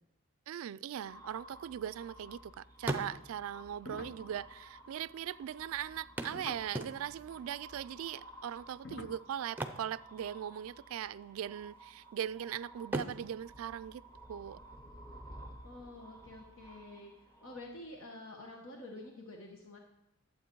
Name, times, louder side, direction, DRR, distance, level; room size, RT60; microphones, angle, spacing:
voice 1, 0.5-14.6, right 9 dB, 80° right, 0.3 m, -40 dB
sound 1, 0.9-18.0, right 1 dB, 15° left, 1.1 m, -54 dB
sound 2, 1.5-2.4 2.7-3.6 4.5-4.6 4.8-4.9 6.2-7.4 9.4-10.7 11.0-11.2 11.7-12.4 12.8-14.6 16.6-16.7 17.1-17.2, right 1 dB, 10° right, 0.6 m, -41 dB
sound 3, 3.7-7.0 8.1-9.2, left 3 dB, 55° left, 0.6 m, -49 dB
voice 2, 15.6-19.8, left 2 dB, 75° left, 1.2 m, -49 dB
11.5 x 7.5 x 4.6 m
head